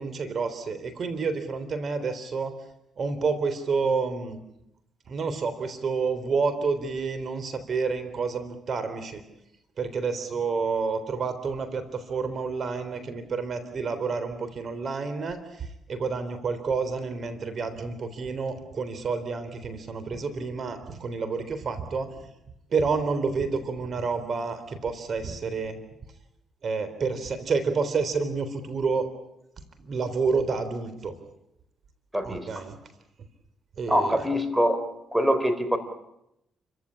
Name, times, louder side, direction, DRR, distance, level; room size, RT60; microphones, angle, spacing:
voice 1, 0.0-2.5 3.0-4.4 5.1-9.2 9.8-22.1 22.7-25.8 26.6-29.1 29.8-31.1 32.2-32.7 33.8-34.2, right 4 dB, 50° right, 10 dB, 3.8 m, -29 dB
voice 2, 32.1-32.6 33.9-34.8 35.1-35.8, equal, 10° right, 9 dB, 3.9 m, -24 dB
29.5 x 15.5 x 9.9 m, 0.84 s
cardioid pair, 90°, 0 cm